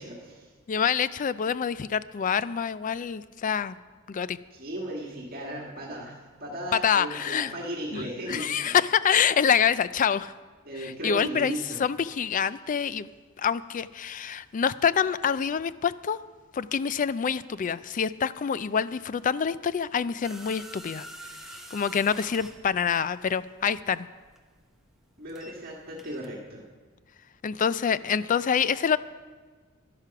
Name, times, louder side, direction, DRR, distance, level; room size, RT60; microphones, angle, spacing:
voice 1, 0.0-0.5 4.5-8.8 10.6-11.8 25.2-26.6, right 1 dB, 45° right, -2 dB, 1.7 m, -36 dB
voice 2, 0.7-3.8 4.1-4.4 6.8-7.5 7.9-8.0 8.3-10.3 10.8-11.5 11.8-13.1 13.4-16.2 16.5-21.1 21.7-24.1 27.4-29.0, left 7 dB, 40° left, 16 dB, 0.4 m, -26 dB
sound 1, 20.2-25.7 26.0-26.3, right 1 dB, ahead, 0.8 m, -46 dB
11.5 x 10.5 x 5.8 m, 1.5 s
head